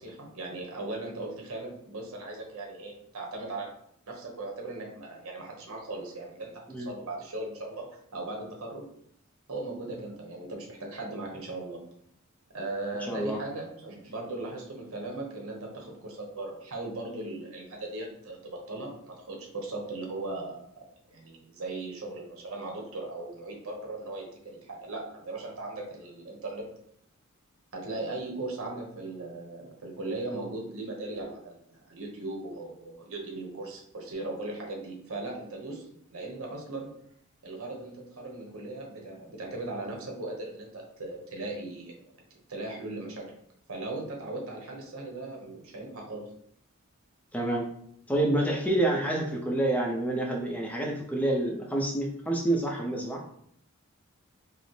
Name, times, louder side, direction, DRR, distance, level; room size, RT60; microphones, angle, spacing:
voice 1, 0.0-3.7 4.1-8.9 9.5-11.8 12.5-20.7 21.1-26.7 27.7-36.9 37.4-42.0 42.5-43.3 43.7-46.3, right 2 dB, 80° right, 0 dB, 1.0 m, -38 dB
voice 2, 13.1-13.4 47.3-47.7 48.1-53.2, right 1 dB, 5° left, -1 dB, 0.5 m, -28 dB
5.0 x 2.0 x 3.1 m, 0.69 s
head